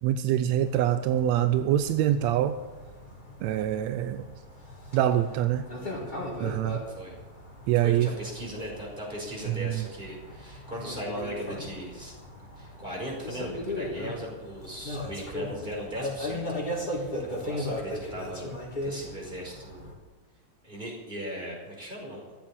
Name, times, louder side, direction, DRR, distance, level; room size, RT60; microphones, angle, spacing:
voice 1, 0.0-2.6 3.4-4.3 4.9-5.6 6.4-6.8 7.7-8.1 9.5-9.8, right 12 dB, 75° right, 10 dB, 1.8 m, -25 dB
sound 1, 0.6-19.9, left 1 dB, 15° left, 3.2 m, -38 dB
voice 2, 7.8-12.2 12.5-18.5 18.8-19.9 20.6-22.2, equal, 15° right, -1 dB, 5.1 m, -38 dB
14.5 x 8.8 x 9.7 m, 1.3 s
omnidirectional pair, 3.3 m